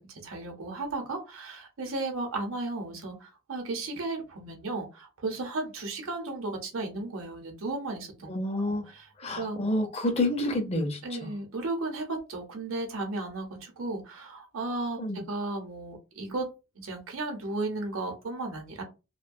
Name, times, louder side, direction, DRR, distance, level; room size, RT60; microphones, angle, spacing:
voice 1, 0.0-8.3 8.6-9.1 9.3-9.6 10.5-10.6 11.0-16.4 16.8-18.8, right 2 dB, 85° right, 3 dB, 0.8 m, -35 dB
voice 2, 8.3-8.9 9.2-11.0 15.0-15.2, left 1 dB, 30° left, 4 dB, 0.5 m, -28 dB
2.2 x 2.2 x 2.5 m, 0.29 s
head